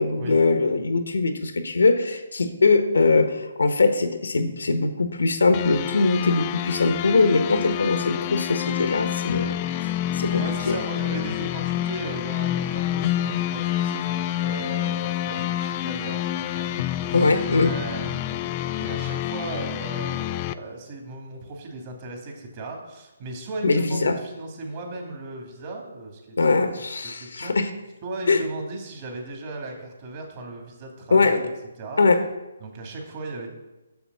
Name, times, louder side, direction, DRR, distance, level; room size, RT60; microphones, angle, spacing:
voice 1, 0.0-9.6 9.8-10.8 17.1-17.7 23.6-24.2 26.4-27.7 28.3-28.4 31.1-31.4 32.0-32.2, left 3 dB, 80° left, 8 dB, 1.2 m, -21 dB
sound 1, 5.5-20.5, left 12 dB, 30° left, 0.4 m, -28 dB
voice 2, 10.1-17.3 17.6-26.6 27.0-27.6 28.0-31.5 31.8-32.0 32.6-33.5, right 2 dB, 40° right, 1 dB, 2.7 m, -37 dB
7.0 x 7.0 x 7.0 m, 1.0 s
hypercardioid pair, 150°, 0 cm